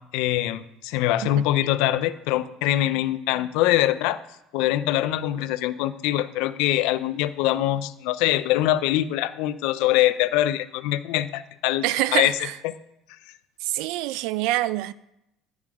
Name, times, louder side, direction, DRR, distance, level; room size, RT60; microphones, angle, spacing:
voice 1, 0.1-4.2 4.5-11.8 12.1-12.3 12.6-12.7, left 14 dB, 85° left, 0.5 m, -23 dB
voice 2, 11.8-12.5 13.6-14.9, right 17 dB, 80° right, 0.4 m, -26 dB
11.0 x 7.1 x 4.9 m
cardioid pair, 160°, 0 cm